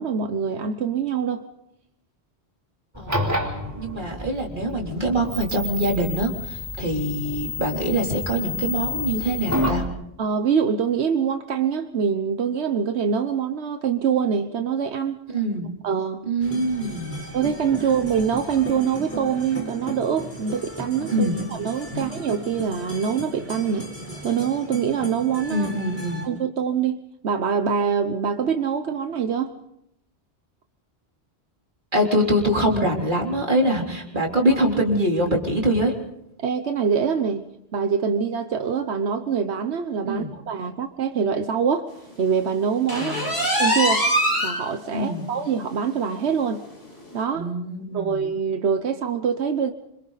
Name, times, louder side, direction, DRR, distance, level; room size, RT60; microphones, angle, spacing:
voice 1, 0.0-1.4 10.2-15.2 15.8-16.2 17.3-21.3 21.6-23.9 24.2-25.7 26.2-27.0 27.2-29.5 36.4-41.9 42.2-43.1 43.6-44.1 44.4-46.6 47.1-47.5 47.9-49.7, right 7 dB, 90° right, 1.3 m, -24 dB
sound 1, 2.9-9.9, left 2 dB, 15° right, 3.8 m, -29 dB
voice 2, 2.9-3.4 3.8-9.8 15.3-15.7 16.2-17.2 21.1-21.4 21.9-22.0 25.5-26.3 31.9-35.9 40.1-40.3 42.9-43.3 44.9-45.3 47.3-48.3, right 1 dB, 50° right, 3.8 m, -24 dB
sound 2, 16.4-26.3, right 2 dB, 10° left, 4.1 m, -36 dB
sound 3, 42.9-44.6 45.0-45.1 45.6-45.7 46.1-46.2 47.1-47.2, equal, 75° left, 5.9 m, -22 dB
27.0 x 25.5 x 4.1 m
omnidirectional pair, 1.1 m